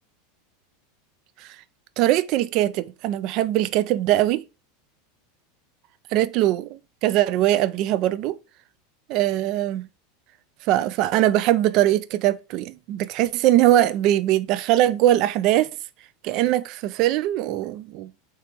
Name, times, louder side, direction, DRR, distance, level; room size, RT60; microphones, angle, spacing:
voice 1, 2.0-4.4 6.1-8.4 9.1-9.9 10.7-15.7 16.2-18.1, right 13 dB, 40° right, 0.3 m, -21 dB
3.4 x 2.9 x 4.4 m
supercardioid pair, 160°, 0 cm